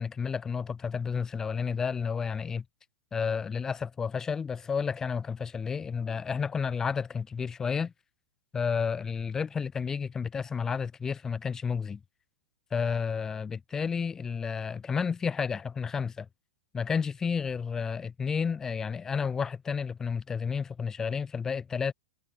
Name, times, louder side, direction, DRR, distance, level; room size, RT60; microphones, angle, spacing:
voice 1, 0.0-2.6 3.1-7.9 8.5-12.0 12.7-16.3 16.7-21.9, left 6 dB, 10° left, 3.1 m, -31 dB
supercardioid pair, 165°, 4 cm